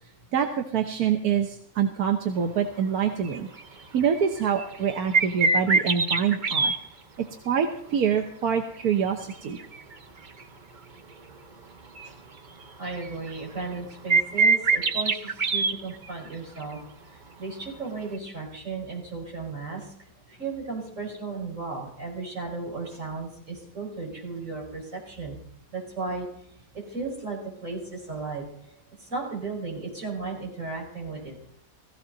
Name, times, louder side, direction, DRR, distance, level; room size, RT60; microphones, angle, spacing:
voice 1, 0.3-3.5 3.9-6.8 7.2-9.6, right 7 dB, 90° right, 5 dB, 1.5 m, -26 dB
sound 1, 3.2-3.6 4.0-6.8 8.8-10.0 10.4-10.5 12.0-12.1 12.6-13.8 14.1-16.3 16.6-16.7 18.1-18.2, right 4 dB, 35° right, 1.0 m, -23 dB
voice 2, 12.8-16.8 17.1-19.9 20.3-25.4 25.7-26.3 26.9-31.4, right 3 dB, 55° right, -2 dB, 5.7 m, -35 dB
16.0 x 15.5 x 4.0 m, 0.64 s
omnidirectional pair, 1.6 m